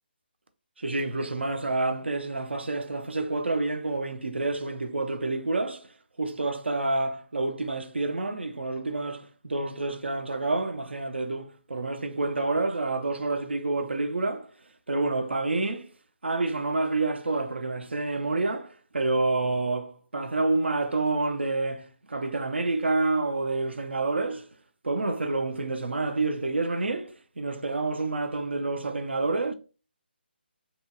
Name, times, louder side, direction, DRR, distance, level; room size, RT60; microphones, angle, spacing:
voice 1, 0.8-5.9 6.2-14.5 14.9-15.9 16.2-24.5 24.8-29.5, right 2 dB, 80° right, 0.5 m, -28 dB
2.7 x 2.7 x 2.2 m
figure-of-eight pair, 150°, 6 cm